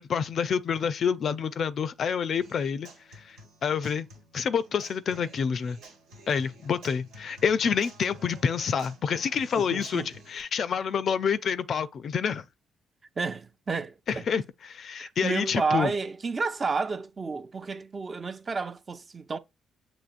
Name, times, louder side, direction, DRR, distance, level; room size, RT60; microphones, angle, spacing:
voice 1, 0.0-2.9 3.2-4.1 4.3-5.8 6.3-12.5 14.1-15.9, left 7 dB, 60° left, 0.4 m, -28 dB
Human voice / Acoustic guitar, 2.4-10.4, right 1 dB, 90° right, 1.5 m, -51 dB
voice 2, 9.6-10.1 13.2-14.3 15.0-19.4, right 4 dB, 40° right, 0.5 m, -31 dB
7.1 x 3.0 x 2.4 m
supercardioid pair, 65°, 0 cm